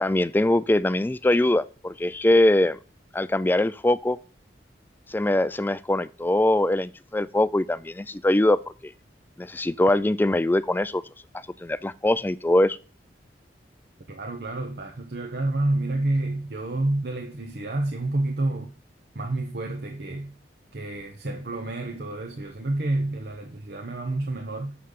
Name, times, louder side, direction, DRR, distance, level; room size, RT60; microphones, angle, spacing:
voice 1, 0.0-2.8 3.1-4.2 5.1-8.9 9.4-11.0 11.6-12.8, left 1 dB, 10° left, 0.3 m, -22 dB
voice 2, 14.1-18.7 19.1-20.3 20.7-24.8, right 2 dB, 60° right, 1.0 m, -29 dB
6.9 x 5.7 x 6.5 m
head